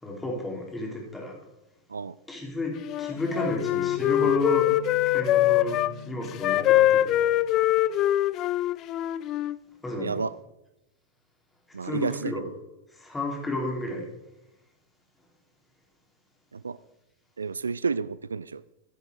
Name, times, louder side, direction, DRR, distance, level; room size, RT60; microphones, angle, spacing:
voice 1, 0.0-1.4 2.3-4.7 5.1-5.8 6.1-7.2 9.8-10.2 11.8-12.5 13.0-14.1, left 1 dB, 10° left, -1 dB, 3.6 m, -32 dB
Wind instrument woodwind instrument, 2.8-5.9 6.4-9.6, left 13 dB, 35° left, 0.3 m, -23 dB
sound 1, 3.1-8.0, left 7 dB, 70° left, 1.8 m, -42 dB
voice 2, 10.0-10.3 11.7-12.5 16.5-16.8 17.4-18.6, right 5 dB, 75° right, 18 dB, 0.3 m, -31 dB
15.0 x 7.9 x 4.6 m, 0.92 s
figure-of-eight pair, 90°, 0 cm